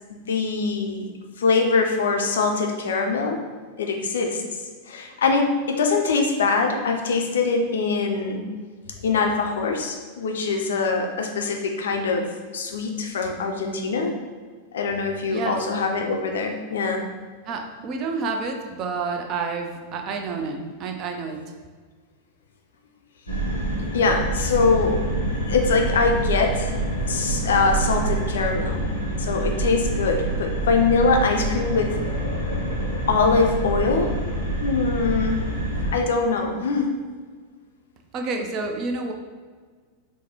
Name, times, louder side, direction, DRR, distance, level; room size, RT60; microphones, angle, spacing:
voice 1, 0.1-1.1 1.4-3.4 3.8-4.4 4.9-8.5 9.0-12.3 12.5-14.1 14.7-17.0 23.9-25.1 25.5-26.7 27.1-28.9 29.2-32.0 33.1-34.1 34.6-35.4 35.9-37.0, left 4 dB, 65° left, 3 dB, 0.4 m, -23 dB
voice 2, 17.5-21.4 38.1-39.1, right 4 dB, 35° right, 4 dB, 0.4 m, -29 dB
sound 1, 23.3-35.9, right 1 dB, 90° right, 0.9 m, -26 dB
4.7 x 2.1 x 2.8 m, 1.5 s
figure-of-eight pair, 90°, 0 cm